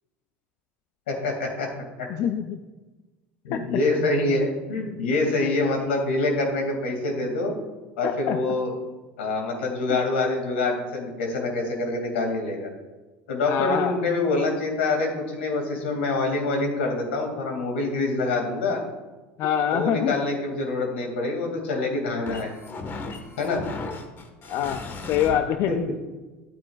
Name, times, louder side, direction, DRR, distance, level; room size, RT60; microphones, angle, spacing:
voice 1, 1.1-1.7 2.0-2.1 3.4-7.6 8.0-8.7 9.2-12.7 13.3-18.8 19.7-22.5 23.4-23.6 25.7-25.8, left 2 dB, 90° left, 2 dB, 2.4 m, -26 dB
voice 2, 2.1-2.6 3.5-3.6 8.0-8.4 13.5-14.0 19.4-20.1 24.5-24.8 25.1-25.9, left 9 dB, 55° left, 8 dB, 0.5 m, -25 dB
sound 1, 19.4-25.3, left 3 dB, 40° left, 1.4 m, -38 dB
12.0 x 8.8 x 2.4 m, 1.2 s
supercardioid pair, 95°, 6 cm